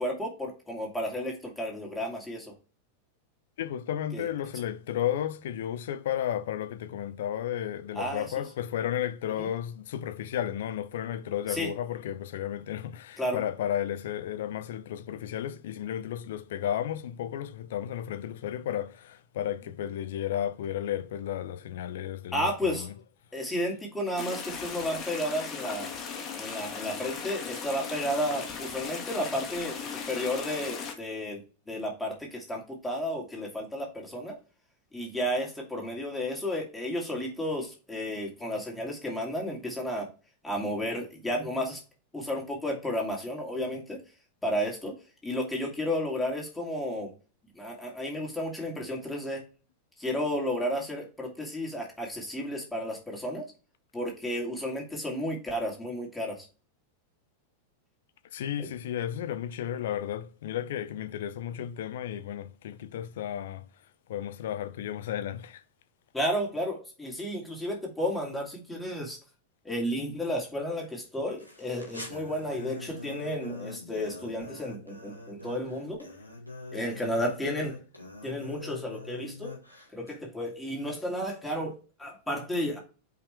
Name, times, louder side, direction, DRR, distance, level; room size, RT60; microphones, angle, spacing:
voice 1, 0.0-2.5 4.1-4.3 7.9-8.3 9.4-9.5 11.5-11.7 13.2-13.4 22.3-22.9 23.3-25.9 26.3-31.4 31.7-34.4 34.9-40.1 40.4-41.8 42.1-44.0 44.4-44.9 45.2-47.1 47.5-49.4 50.0-53.5 53.9-56.5 58.6-58.7 66.1-69.2 69.6-76.1 76.7-77.8 78.2-79.5 79.9-82.8, equal, 5° left, 2.4 m, -32 dB
voice 2, 3.6-22.9 58.3-63.7 64.1-65.6, left 10 dB, 55° left, 0.6 m, -33 dB
sound 1, 24.2-30.9, left 6 dB, 30° left, 1.6 m, -38 dB
sound 2, 71.4-80.2, left 2 dB, 90° right, 1.8 m, -44 dB
5.7 x 5.0 x 3.4 m
figure-of-eight pair, 90°, 0 cm